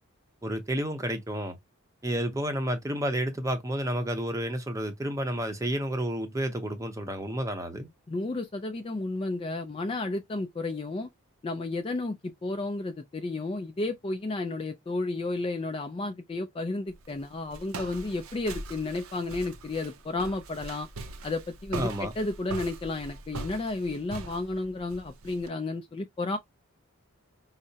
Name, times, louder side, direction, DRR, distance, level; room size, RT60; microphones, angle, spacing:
voice 1, 0.4-1.5 2.0-7.9 21.7-22.1, right 1 dB, 15° right, 0.6 m, -30 dB
voice 2, 8.1-11.1 11.4-20.9 21.2-26.4, left 2 dB, 25° left, 0.3 m, -32 dB
Walk footsteps, 16.9-25.5, right 3 dB, 80° right, 0.6 m, -41 dB
4.7 x 2.0 x 2.7 m
head